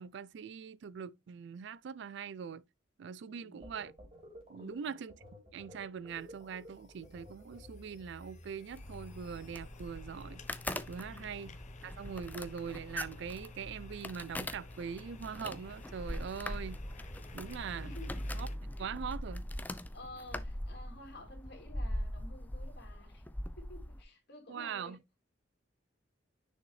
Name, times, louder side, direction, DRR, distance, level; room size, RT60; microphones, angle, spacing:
voice 1, 0.0-2.6 3.0-3.9 4.5-5.1 5.5-10.4 10.9-11.5 11.8-16.8 17.3-17.9 18.3-18.5 18.8-19.4 24.5-25.0, right 7 dB, 60° right, 0.4 m, -42 dB
voice 2, 3.2-3.7 4.6-5.0 11.0-11.5 17.7-18.2 18.8-18.9 19.9-23.2 23.6-25.0, left 1 dB, 55° left, 2.9 m, -52 dB
sound 1, 3.6-8.0, equal, 30° right, 3.2 m, -54 dB
sound 2, 6.1-18.6, left 3 dB, 40° left, 0.8 m, -54 dB
sound 3, 8.7-24.0, left 1 dB, 10° left, 0.5 m, -42 dB
6.6 x 5.3 x 3.2 m
head